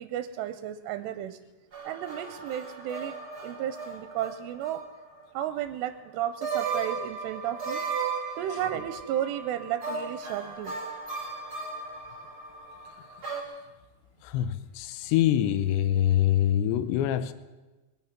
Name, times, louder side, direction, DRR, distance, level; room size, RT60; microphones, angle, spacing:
voice 1, 0.0-1.4 1.9-3.2 3.4-4.8 5.3-7.8 8.4-10.7, right 11 dB, 80° right, 10 dB, 2.6 m, -33 dB
sound 1, 1.7-5.2 5.6-5.7 6.4-13.4, right 5 dB, 40° right, 1.4 m, -36 dB
voice 2, 14.2-17.3, left 11 dB, 80° left, 13 dB, 2.9 m, -25 dB
22.0 x 9.4 x 5.9 m, 1.2 s
omnidirectional pair, 5.1 m